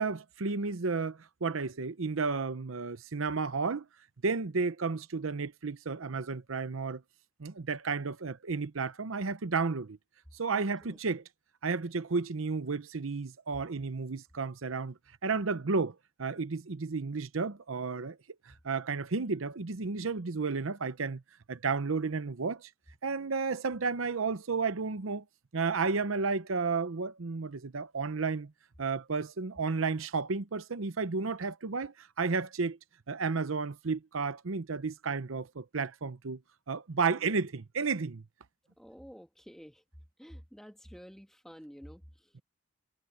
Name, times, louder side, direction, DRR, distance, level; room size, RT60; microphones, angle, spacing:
voice 1, 0.0-3.9 4.2-7.0 7.4-10.0 10.4-11.2 11.6-14.9 15.2-18.2 18.5-21.2 21.5-22.7 23.0-25.2 25.5-28.5 28.8-32.8 33.1-36.4 36.7-38.2, right 4 dB, 85° right, 0.8 m, -32 dB
voice 2, 10.5-11.0 38.8-39.8 40.2-42.4, equal, ahead, 2.4 m, -50 dB
head